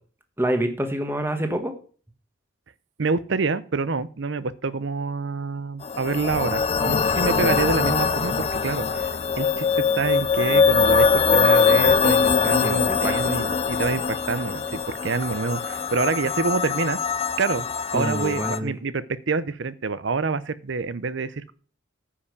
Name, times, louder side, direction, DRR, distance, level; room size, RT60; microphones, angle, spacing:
voice 1, 0.4-1.7 12.6-13.4 17.9-18.8, right 1 dB, 10° right, 5 dB, 1.3 m, -27 dB
voice 2, 3.0-9.1 9.4-17.0 17.4-17.7 17.9-21.5, right 4 dB, 60° right, 16 dB, 0.6 m, -27 dB
sound 1, 5.8-18.6, left 5 dB, 30° left, 0.5 m, -22 dB
9.7 x 5.7 x 6.7 m, 0.41 s
head